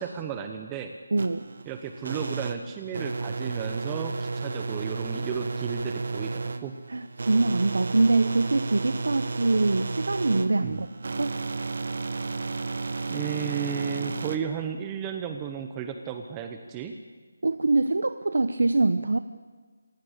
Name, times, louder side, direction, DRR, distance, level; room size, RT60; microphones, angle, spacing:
voice 1, 0.0-0.9 1.7-6.7 10.6-10.8 13.1-16.9, right 7 dB, 15° right, 6 dB, 1.0 m, -33 dB
voice 2, 1.1-1.4 6.9-10.9 11.2-11.4 17.4-19.2, right 2 dB, 75° right, 11 dB, 1.0 m, -24 dB
sound 1, 1.2-14.4, right 3 dB, 60° right, 1.7 m, -33 dB
26.5 x 17.5 x 8.3 m, 1.4 s
figure-of-eight pair, 170°, 0 cm